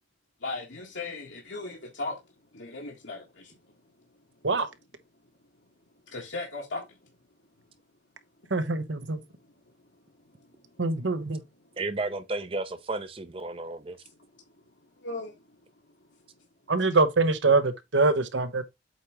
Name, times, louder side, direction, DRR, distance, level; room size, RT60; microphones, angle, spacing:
voice 1, 0.4-2.2 2.5-3.6 6.1-7.0 9.4-9.5 10.4-11.2 14.3-14.4 15.0-15.4, left 3 dB, 75° left, 1.7 m, -38 dB
voice 2, 8.5-9.2 10.8-11.4 16.7-18.6, right 3 dB, 75° right, 1.0 m, -24 dB
voice 3, 11.8-14.0, right 2 dB, 30° right, 0.6 m, -33 dB
8.1 x 3.0 x 4.9 m
head